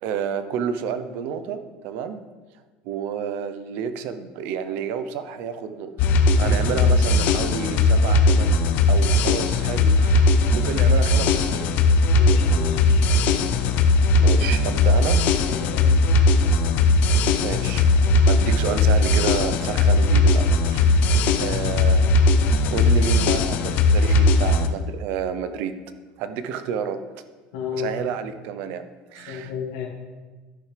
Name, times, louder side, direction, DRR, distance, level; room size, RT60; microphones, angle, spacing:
voice 1, 0.0-2.2 2.8-5.9 6.4-8.6 8.9-11.6 14.2-15.2 15.6-15.9 17.4-21.1 21.4-22.1 22.7-25.7 26.2-27.0 27.7-28.8 29.1-29.5, right 7 dB, 60° right, 10 dB, 0.7 m, -30 dB
sound 1, 6.0-24.7, left 2 dB, 45° left, 0.6 m, -18 dB
voice 2, 6.4-6.7 12.2-13.0 15.5-16.2 27.5-27.9 29.3-29.8, left 7 dB, 80° left, -1 dB, 1.6 m, -32 dB
11.0 x 6.5 x 3.4 m, 1.3 s
cardioid pair, 160°, 4 cm